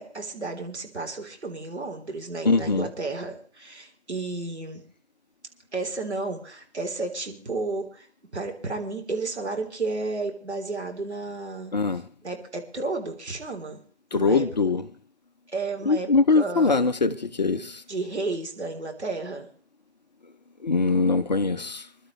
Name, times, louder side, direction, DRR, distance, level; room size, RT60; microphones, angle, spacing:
voice 1, 0.0-4.8 5.7-8.1 8.3-13.8 14.1-14.5 15.5-16.9 17.9-19.5, right 3 dB, 70° right, 3.8 m, -32 dB
voice 2, 2.4-2.9 11.7-12.1 14.1-14.8 15.9-17.8 20.6-21.9, left 4 dB, 40° left, 0.7 m, -22 dB
27.0 x 12.0 x 3.2 m
figure-of-eight pair, 145°, 34 cm